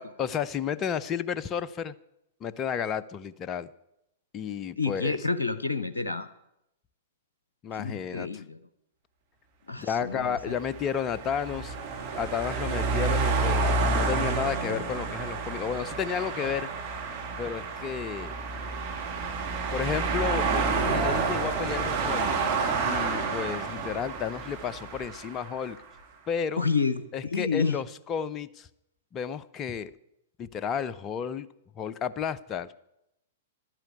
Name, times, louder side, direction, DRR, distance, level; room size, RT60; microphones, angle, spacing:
voice 1, 0.0-1.9 2.4-3.7 4.3-5.2 7.6-8.4 9.8-11.7 12.2-16.7 17.4-18.4 19.7-22.3 22.8-25.8 26.3-26.6 27.1-28.7 29.1-29.9 30.4-31.5 31.8-32.7, left 7 dB, 25° left, 16 dB, 0.5 m, -32 dB
voice 2, 4.8-6.3 7.8-8.6 9.7-10.5 26.6-27.8, left 4 dB, 80° left, 13 dB, 0.6 m, -29 dB
sound 1, 10.3-25.7, right 4 dB, 40° right, 2.3 m, -29 dB
11.5 x 9.0 x 8.2 m, 0.84 s
figure-of-eight pair, 105°, 0 cm